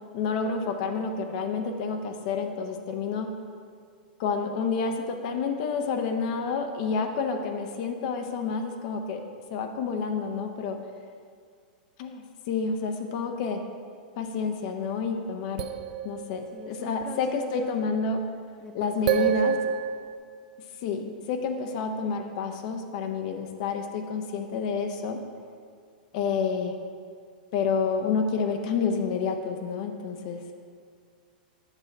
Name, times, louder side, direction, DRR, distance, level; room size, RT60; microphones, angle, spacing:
voice 1, 0.1-3.3 4.2-9.2 9.5-10.8 12.0-13.6 14.2-15.7 16.0-18.2 18.7-19.5 20.8-25.2 26.1-26.8 27.5-30.4, left 5 dB, 50° left, 5 dB, 0.6 m, -29 dB
sound 1, 15.6-17.0 19.1-20.2, right 8 dB, 65° right, 0.4 m, -27 dB
voice 2, 16.5-17.8 18.6-19.6, left 4 dB, 10° left, 3 dB, 0.3 m, -42 dB
8.1 x 5.6 x 4.1 m, 2.1 s
supercardioid pair, 145°, 5 cm